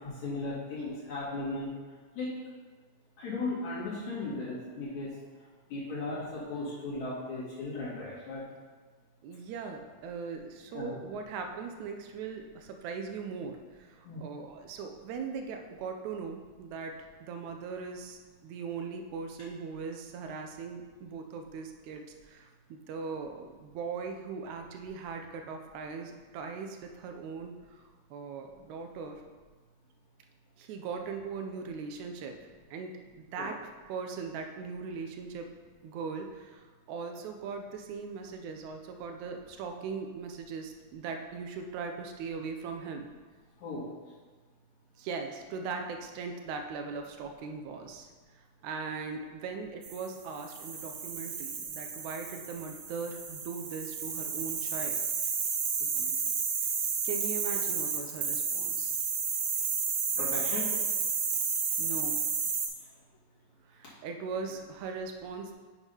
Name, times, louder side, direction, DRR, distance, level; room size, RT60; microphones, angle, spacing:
voice 1, 0.0-1.7 2.2-2.3 3.2-5.1 5.7-8.4 10.7-10.9 14.0-14.2 33.4-33.5 43.6-43.9 55.8-56.1 60.2-60.7, left 2 dB, 70° left, -8 dB, 3.7 m, -36 dB
voice 2, 9.2-17.0 17.2-27.8 28.1-29.2 30.6-32.4 32.7-33.6 33.9-35.5 35.8-43.1 45.0-48.1 48.6-55.0 57.0-58.9 61.8-62.2 63.7-65.5, right 5 dB, 80° right, 4 dB, 2.0 m, -39 dB
sound 1, 49.8-62.7, right 6 dB, 65° right, 1.7 m, -32 dB
8.0 x 3.7 x 5.4 m, 1.4 s
omnidirectional pair, 3.4 m